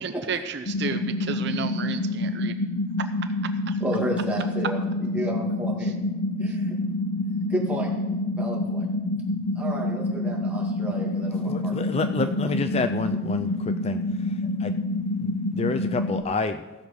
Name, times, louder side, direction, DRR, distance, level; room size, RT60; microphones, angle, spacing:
voice 1, 0.0-2.6 3.7-3.8, right 5 dB, 55° right, 8 dB, 0.6 m, -32 dB
sound 1, 0.7-16.2, left 2 dB, 90° left, 0.7 m, -27 dB
voice 2, 3.8-5.9 6.4-6.7 7.5-7.9 8.3-8.9 9.6-11.7, right 1 dB, 5° right, -3 dB, 2.0 m, -32 dB
voice 3, 11.1-14.7 15.2-16.6, left 3 dB, 30° left, 9 dB, 0.3 m, -29 dB
16.0 x 6.4 x 5.2 m, 1.1 s
head